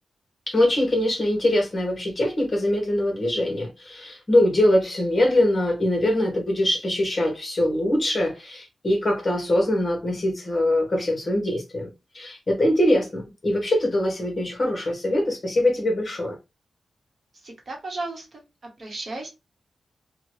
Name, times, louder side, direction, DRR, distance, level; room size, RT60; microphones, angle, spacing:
voice 1, 0.5-11.9 12.1-16.4, left 1 dB, 35° left, 1.1 m, -23 dB
voice 2, 17.4-18.3 18.6-19.3, right 2 dB, 50° right, 1.0 m, -34 dB
2.8 x 2.2 x 3.1 m
wide cardioid pair, 135°, 0 cm